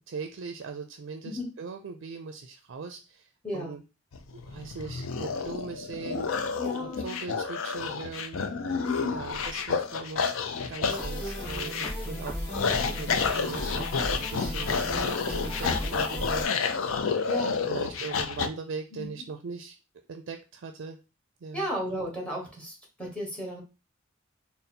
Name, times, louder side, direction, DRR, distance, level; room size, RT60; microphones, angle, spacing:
voice 1, 0.1-3.8 4.3-8.4 9.1-10.2 10.7-12.5 12.8-13.9 14.2-16.5 17.7-19.7 20.1-21.0 21.4-21.7, right 5 dB, 65° right, 6 dB, 0.4 m, -40 dB
voice 2, 3.4-3.8 6.6-7.2 8.8-9.2 15.6-15.7 17.3-17.6 18.9-19.1 21.5-23.6, left 1 dB, 5° left, -1 dB, 1.3 m, -34 dB
sound 1, 4.1-18.5, left 5 dB, 80° left, 0.5 m, -30 dB
sound 2, 10.9-16.5, equal, 25° left, 1.8 m, -35 dB
3.9 x 2.1 x 4.1 m, 0.30 s
head